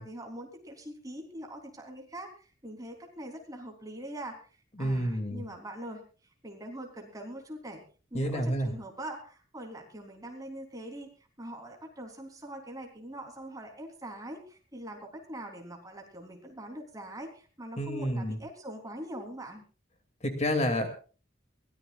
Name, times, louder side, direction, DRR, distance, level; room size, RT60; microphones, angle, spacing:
voice 1, 0.0-4.4 4.8-6.0 6.4-7.8 8.1-11.1 11.4-19.6, right 1 dB, 20° right, 2 dB, 3.5 m, -43 dB
voice 2, 4.8-5.4 8.1-8.7 17.8-18.4 20.2-20.9, equal, 35° left, 6 dB, 2.6 m, -29 dB
23.0 x 18.0 x 2.4 m, 0.37 s
head